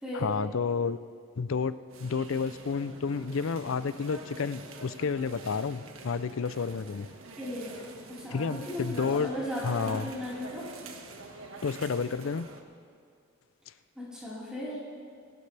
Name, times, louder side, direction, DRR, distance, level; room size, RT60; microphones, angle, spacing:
voice 1, 0.1-1.0 1.4-7.1 8.3-9.3 9.6-10.1 11.6-12.5, left 5 dB, 75° left, 14 dB, 0.5 m, -30 dB
sound 1, 1.9-12.6, right 3 dB, 80° right, 1.5 m, -46 dB
voice 2, 7.4-7.8 8.2-10.6 14.0-14.8, left 1 dB, 5° right, -9 dB, 4.3 m, -36 dB
29.5 x 12.0 x 3.4 m, 2.3 s
head